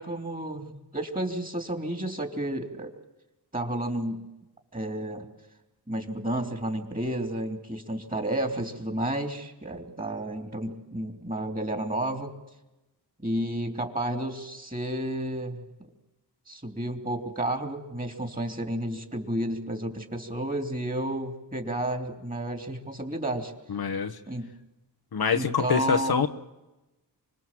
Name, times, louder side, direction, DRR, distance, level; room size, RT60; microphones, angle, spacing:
voice 1, 0.0-2.9 3.5-4.2 4.7-5.3 5.9-12.3 13.2-15.6 16.5-23.5 24.3-24.5 25.3-26.2, right 1 dB, 20° right, 5 dB, 3.5 m, -31 dB
voice 2, 23.7-24.1 25.1-26.3, left 6 dB, 65° left, 8 dB, 1.2 m, -25 dB
25.0 x 20.5 x 7.7 m, 1.0 s
cardioid pair, 50°, 41 cm